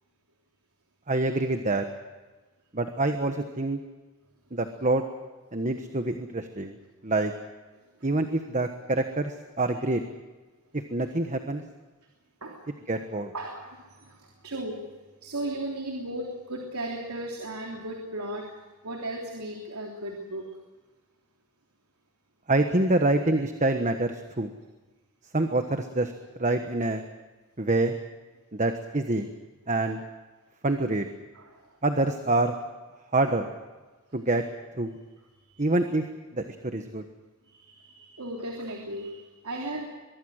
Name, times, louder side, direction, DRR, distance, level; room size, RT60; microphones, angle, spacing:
voice 1, 1.1-1.8 2.7-3.8 4.5-5.0 5.5-6.7 7.0-7.3 8.0-10.0 10.7-11.6 12.9-13.3 22.5-24.5 25.3-26.1 26.4-27.0 27.6-27.9 28.5-29.3 29.7-30.0 30.6-31.1 31.8-32.5 33.1-33.5 34.1-34.4 34.7-34.9 35.6-36.0 36.3-37.0, right 2 dB, 35° right, 6 dB, 1.3 m, -26 dB
voice 2, 13.3-14.8 15.2-18.5 18.8-20.5 31.3-31.8 35.2-35.7 37.4-39.9, right 1 dB, 85° right, 0 dB, 3.4 m, -36 dB
24.0 x 22.5 x 6.5 m, 1.3 s
head